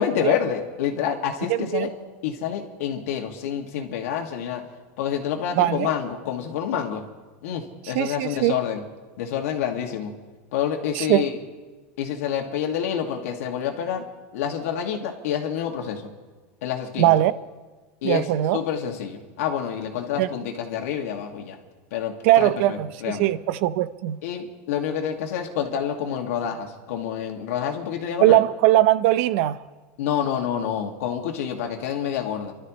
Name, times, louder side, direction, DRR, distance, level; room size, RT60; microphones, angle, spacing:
voice 1, 0.0-1.9 2.2-4.6 5.0-7.0 7.4-8.8 9.2-10.1 10.5-11.4 12.0-14.0 14.3-16.1 16.6-17.1 18.0-18.3 18.5-21.6 21.9-23.3 24.2-28.4 30.0-32.5, left 8 dB, 80° left, 2.1 m, -28 dB
voice 2, 1.5-1.9 5.6-5.9 7.9-8.6 10.9-11.2 17.0-17.3 18.0-18.6 20.2-20.3 22.2-24.2 28.2-29.6, right 14 dB, 60° right, 0.6 m, -20 dB
30.0 x 12.5 x 3.2 m
supercardioid pair, 160°, 8 cm